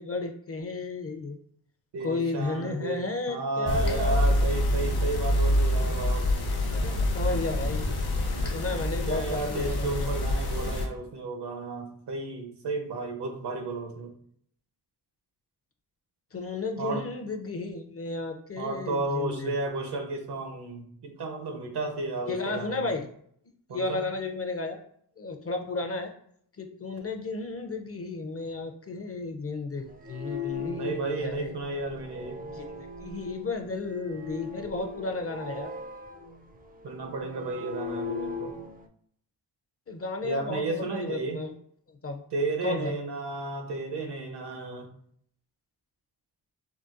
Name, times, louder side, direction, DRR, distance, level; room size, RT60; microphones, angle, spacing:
voice 1, 0.0-1.4 2.0-4.2 6.7-7.9 8.5-10.1 16.3-19.6 22.3-23.1 23.7-24.8 25.2-26.1 26.6-31.5 32.5-35.7 39.9-41.5 41.9-42.2 42.6-42.9, left 3 dB, 35° left, 5 dB, 0.5 m, -33 dB
voice 2, 1.9-3.0 3.3-6.3 8.4-8.5 9.1-14.1 16.8-17.0 18.6-22.9 23.7-24.0 30.5-32.4 36.8-38.5 40.2-41.4 42.3-44.9, right 2 dB, 70° right, 4 dB, 0.7 m, -33 dB
sound 1, 3.7-10.9, left 1 dB, 65° left, 0.7 m, -26 dB
sound 2, 29.9-38.9, left 5 dB, 25° right, 0.4 m, -39 dB
3.8 x 2.2 x 2.4 m, 0.65 s
cardioid pair, 60°, 42 cm